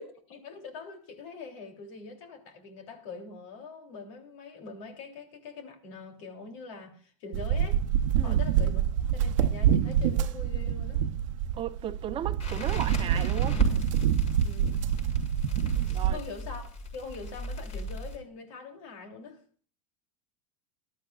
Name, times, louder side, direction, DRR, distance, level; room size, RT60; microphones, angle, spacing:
voice 1, 0.0-7.8 8.2-8.8 9.1-11.0 14.4-14.8 15.7-19.4, left 4 dB, 70° left, 3.3 m, -43 dB
sound 1, 7.3-16.2, right 9 dB, 75° right, 0.9 m, -26 dB
voice 2, 11.5-13.6 15.9-16.2, right 10 dB, 35° right, 0.9 m, -35 dB
Crackle, 12.4-18.2, left 1 dB, 40° left, 6.5 m, -37 dB
20.0 x 12.5 x 2.5 m
hypercardioid pair, 105°, 16 cm